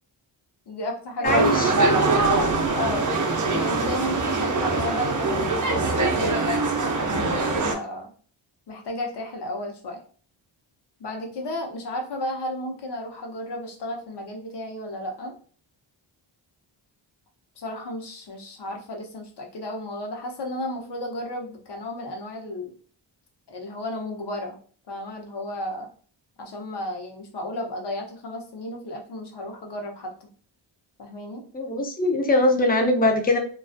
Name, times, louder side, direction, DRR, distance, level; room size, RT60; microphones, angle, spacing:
voice 1, 0.7-1.9 2.7-3.1 3.5-6.6 7.0-8.1 8.7-10.0 11.0-15.3 17.6-22.7 23.5-24.6 24.9-25.9 26.4-30.3 31.0-31.4, left 1 dB, 60° left, 2 dB, 0.8 m, -33 dB
voice 2, 1.2-1.7 31.5-33.4, left 2 dB, 20° left, 3 dB, 0.5 m, -21 dB
sound 1, 1.2-7.7, right 3 dB, 40° right, 0.6 m, -23 dB
2.3 x 2.3 x 2.5 m, 0.43 s
cardioid pair, 75°, 47 cm